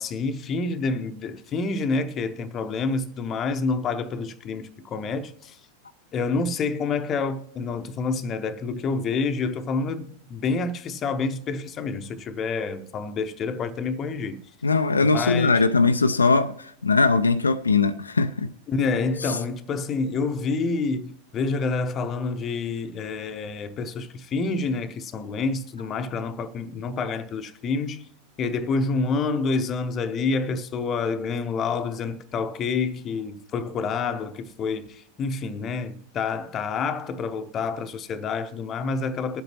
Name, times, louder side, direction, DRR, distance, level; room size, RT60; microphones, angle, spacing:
voice 1, 0.0-5.6 6.1-14.4 15.0-15.6 18.7-28.1 28.4-39.4, left 4 dB, 30° left, 0.8 m, -28 dB
voice 2, 14.6-18.5 19.3-19.4, left 4 dB, 80° left, 0.4 m, -20 dB
20.5 x 7.9 x 2.9 m
figure-of-eight pair, 90°, 0 cm